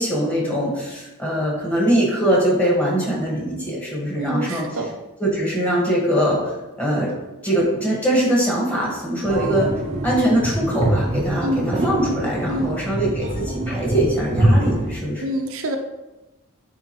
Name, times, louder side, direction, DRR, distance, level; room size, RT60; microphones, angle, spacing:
voice 1, 0.0-4.6 5.2-6.5 6.8-7.1 7.4-9.7 10.0-15.2, right 1 dB, 5° left, -5 dB, 1.7 m, -22 dB
voice 2, 4.2-4.9 11.4-11.7 12.5-12.8 15.2-15.8, right 1 dB, 70° right, 4 dB, 0.6 m, -26 dB
sound 1, 9.2-14.9, right 1 dB, 30° right, 0.6 m, -23 dB
9.0 x 3.4 x 3.1 m, 1.1 s
head